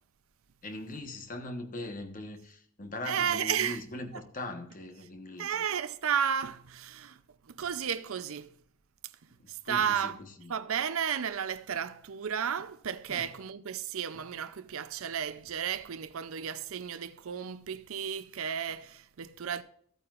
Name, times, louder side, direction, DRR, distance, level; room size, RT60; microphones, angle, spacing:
voice 1, 0.6-5.6 9.4-10.1 10.4-10.5 13.1-13.3, left 2 dB, 40° left, 1.2 m, -40 dB
voice 2, 3.1-3.8 4.1-4.2 5.4-8.5 9.5-10.2 10.5-19.6, right 8 dB, 65° right, 0.5 m, -33 dB
14.0 x 9.0 x 2.5 m
head